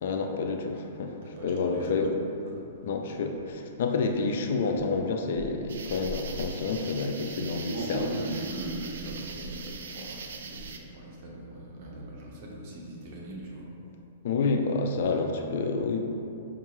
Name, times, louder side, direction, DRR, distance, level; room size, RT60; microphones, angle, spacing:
voice 1, 0.0-1.2 1.4-2.1 2.8-8.4 14.2-16.0, left 4 dB, 60° left, 4 dB, 0.3 m, -29 dB
voice 2, 1.2-2.2 2.4-2.6 7.6-13.7, right 2 dB, 45° right, -3 dB, 0.7 m, -39 dB
sound 1, 5.7-10.8, right 4 dB, 75° right, 0.3 m, -41 dB
4.5 x 2.4 x 3.0 m, 2.7 s
hypercardioid pair, 155°, 0 cm